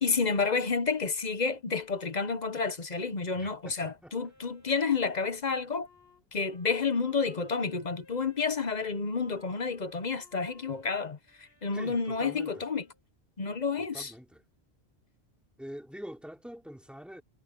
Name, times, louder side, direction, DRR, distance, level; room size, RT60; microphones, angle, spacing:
voice 1, 0.0-5.9 6.3-12.8 13.4-14.1, left 5 dB, 45° left, 1.1 m, -30 dB
voice 2, 3.3-4.1 11.7-12.6 13.8-14.4 15.6-17.2, equal, ahead, 3.3 m, -45 dB
Wind instrument woodwind instrument, 4.1-13.0, left 2 dB, 75° left, 7.0 m, -60 dB
omnidirectional pair, 1.1 m